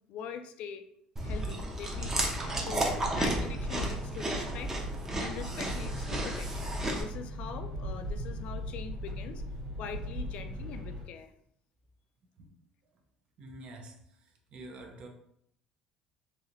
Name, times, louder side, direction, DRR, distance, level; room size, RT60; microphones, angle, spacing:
voice 1, 0.1-0.8 1.2-2.9 3.2-4.7 5.2-9.4 9.8-11.3, left 7 dB, 65° left, 9 dB, 0.3 m, -43 dB
Chewing mastication, 1.2-7.0, right 1 dB, 20° right, 0.7 m, -33 dB
sound 1, 1.9-11.0, equal, 75° right, 1.5 m, -39 dB
voice 2, 13.4-15.1, right 2 dB, 55° right, 3 dB, 0.7 m, -48 dB
3.1 x 2.8 x 2.5 m, 0.71 s
supercardioid pair, 95°, 2 cm